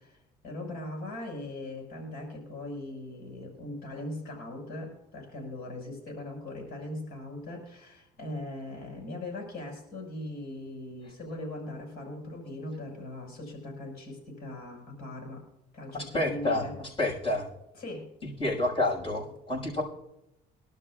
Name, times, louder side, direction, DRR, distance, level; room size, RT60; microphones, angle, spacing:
voice 1, 0.0-15.4 15.7-16.7 17.7-18.1, left 1 dB, 65° left, 1 dB, 6.1 m, -40 dB
voice 2, 15.9-17.5 18.4-19.8, left 2 dB, 30° left, -2 dB, 6.1 m, -29 dB
23.0 x 12.0 x 2.5 m, 0.89 s
cardioid pair, 110°, 17 cm